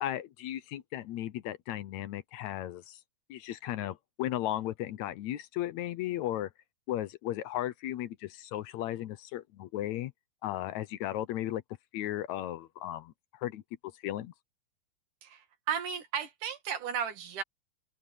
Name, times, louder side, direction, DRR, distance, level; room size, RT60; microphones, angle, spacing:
voice 1, 0.0-3.0 3.3-6.5 6.9-10.1 10.4-11.6 11.9-13.1 13.4-13.6 14.0-14.3, left 13 dB, 75° left, 2.0 m, -35 dB
voice 2, 15.2-17.4, right 7 dB, 90° right, 3.7 m, -34 dB
open air
omnidirectional pair, 3.5 m